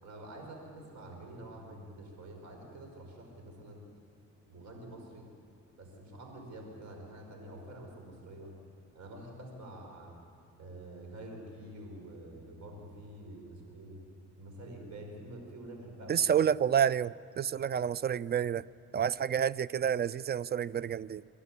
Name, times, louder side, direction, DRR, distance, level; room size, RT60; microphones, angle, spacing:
voice 1, 0.0-3.8 4.5-5.3 5.7-8.5 8.9-10.1 10.6-14.0 14.4-16.3, right 1 dB, 65° right, 5.3 m, -47 dB
voice 2, 16.1-18.6 18.9-21.2, right 8 dB, 35° right, 0.4 m, -29 dB
25.0 x 11.5 x 9.8 m
cardioid pair, 90°, 30 cm